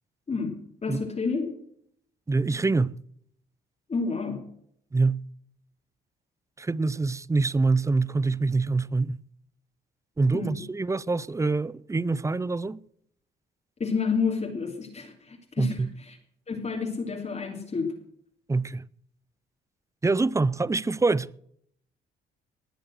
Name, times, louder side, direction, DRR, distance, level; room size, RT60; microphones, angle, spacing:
voice 1, 0.8-1.5 3.9-4.4 10.3-10.6 13.8-16.2 16.5-17.9, left 5 dB, 35° left, 3.0 m, -30 dB
voice 2, 2.3-3.0 4.9-5.2 6.6-9.2 10.2-12.8 15.6-15.9 18.5-18.8 20.0-21.3, right 3 dB, 15° right, 0.5 m, -25 dB
19.0 x 7.7 x 6.4 m
cardioid pair, 90°, 20 cm